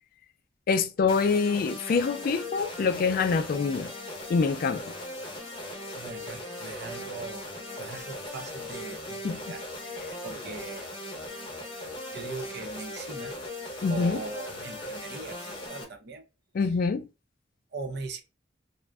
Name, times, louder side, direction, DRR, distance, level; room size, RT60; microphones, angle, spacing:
voice 1, 0.7-3.9 4.3-4.9 9.2-9.4 13.8-14.2 16.5-17.1, left 5 dB, 50° left, 0.3 m, -25 dB
sound 1, 1.1-15.8, left 1 dB, 25° left, 0.7 m, -39 dB
voice 2, 5.9-7.5 7.8-9.6 10.2-10.9 12.1-13.3 13.9-16.2 17.7-18.2, right 3 dB, 65° right, 0.6 m, -40 dB
2.5 x 2.1 x 3.4 m
head